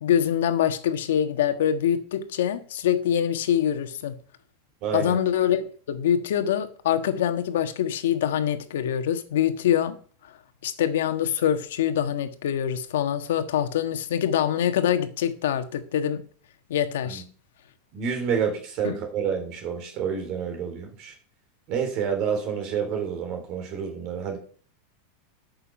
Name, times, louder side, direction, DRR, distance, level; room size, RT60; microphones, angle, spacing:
voice 1, 0.0-4.2 4.9-10.0 10.6-16.2 16.7-17.2 18.8-18.9, left 9 dB, 80° left, 1.4 m, -24 dB
voice 2, 4.8-5.2 17.0-17.2 17.9-21.1 21.7-24.4, right 7 dB, 35° right, 3.5 m, -28 dB
13.0 x 6.7 x 5.2 m
supercardioid pair, 170°, 0 cm